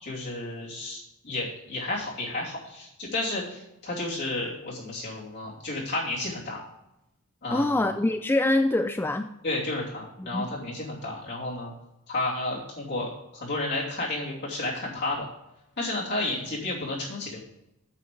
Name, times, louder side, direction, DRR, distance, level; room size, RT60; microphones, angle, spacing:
voice 1, 0.0-6.6 7.4-7.9 9.4-11.7 12.1-15.2 15.8-17.4, left 2 dB, 50° left, -5 dB, 2.8 m, -32 dB
voice 2, 7.5-9.3 10.2-10.5, left 2 dB, 10° left, 7 dB, 0.3 m, -25 dB
8.5 x 7.9 x 5.2 m, 0.86 s
head